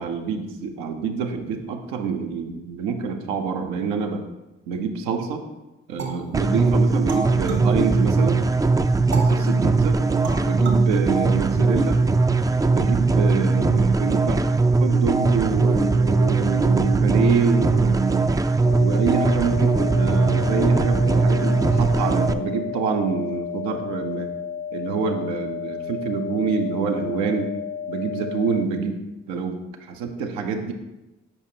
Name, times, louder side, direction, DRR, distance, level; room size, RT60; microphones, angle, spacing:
voice 1, 0.0-4.2 4.7-5.4 5.9-8.4 9.2-10.0 10.4-12.0 12.7-14.5 14.8-18.2 18.8-24.3 24.7-27.5 27.9-30.7, right 5 dB, 85° right, 4 dB, 0.7 m, -26 dB
sound 1, 6.0-8.5 9.1-11.9, right 6 dB, 65° right, 1.3 m, -34 dB
sound 2, 6.3-22.3, right 3 dB, 15° right, 0.3 m, -20 dB
sound 3, 18.6-28.6, left 8 dB, 85° left, 0.6 m, -33 dB
7.0 x 5.0 x 2.8 m, 1.0 s
hypercardioid pair, 45°, 29 cm